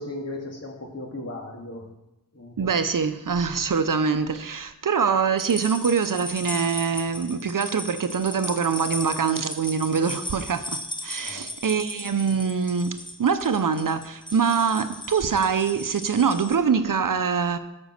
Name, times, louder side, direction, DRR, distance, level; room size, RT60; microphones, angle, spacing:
voice 1, 0.0-1.9 2.3-2.7 11.2-11.5, left 2 dB, 45° left, 2.3 m, -36 dB
voice 2, 2.6-10.7 11.0-12.9 13.2-17.6, right 6 dB, 65° right, 0.7 m, -24 dB
sound 1, 5.4-16.6, left 1 dB, 15° left, 1.0 m, -37 dB
12.0 x 5.4 x 6.5 m
wide cardioid pair, 50°, 35 cm